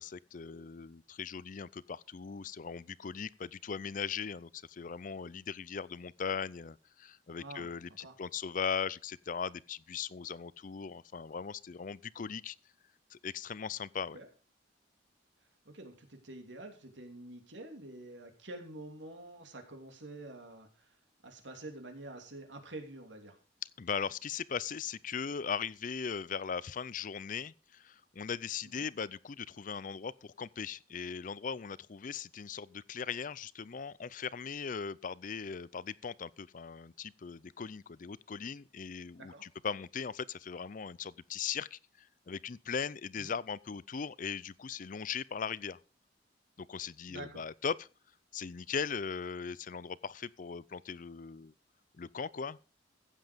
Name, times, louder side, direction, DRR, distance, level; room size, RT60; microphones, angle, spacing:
voice 1, 0.0-12.6 13.1-14.2 23.8-45.8 46.6-47.9 48.3-51.5 52.0-52.6, left 6 dB, 45° left, 0.5 m, -39 dB
voice 2, 7.4-7.7 8.0-8.1 14.1-14.3 15.6-20.9 21.2-23.4 28.8-28.9 39.2-39.4 43.2-43.3 47.1-47.4, right 2 dB, 90° right, 2.9 m, -47 dB
15.5 x 7.6 x 5.1 m
head